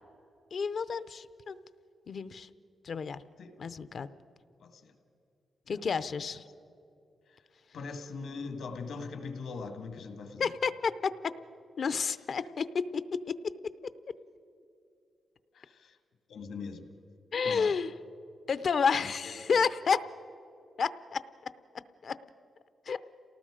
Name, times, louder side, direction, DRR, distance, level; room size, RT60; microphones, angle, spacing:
voice 1, 0.5-1.6 2.1-2.5 2.8-3.2 3.6-4.1 5.7-6.4 10.4-11.1 11.8-13.3 17.3-17.9 18.5-20.0 20.8-21.2 22.0-22.2 22.9-23.0, left 5 dB, 50° left, 14 dB, 0.5 m, -30 dB
voice 2, 4.6-5.0 5.7-5.8 7.3-7.4 7.7-10.5 15.5-16.0 16.3-16.9 17.4-17.7 19.0-19.6, left 4 dB, 80° left, 7 dB, 1.7 m, -41 dB
28.0 x 18.5 x 5.0 m, 2.7 s
wide cardioid pair, 155°, 0 cm